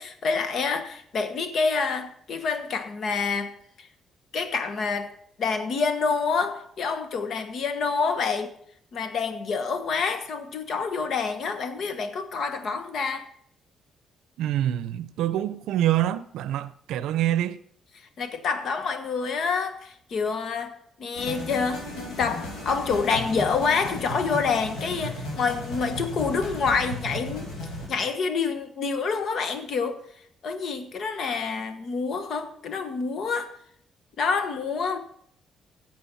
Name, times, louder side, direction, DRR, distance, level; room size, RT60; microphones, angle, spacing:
voice 1, 0.0-3.9 4.3-5.1 5.4-8.5 8.9-13.3 18.2-21.9 22.2-27.5 27.9-30.0 30.4-33.5 34.2-35.0, left 5 dB, 65° left, 1.3 m, -27 dB
voice 2, 14.4-17.6, right 12 dB, 85° right, 0.5 m, -26 dB
sound 1, 21.1-27.8, left 1 dB, 85° left, 5.0 m, -35 dB
15.0 x 7.7 x 4.2 m
cardioid pair, 90°, 0 cm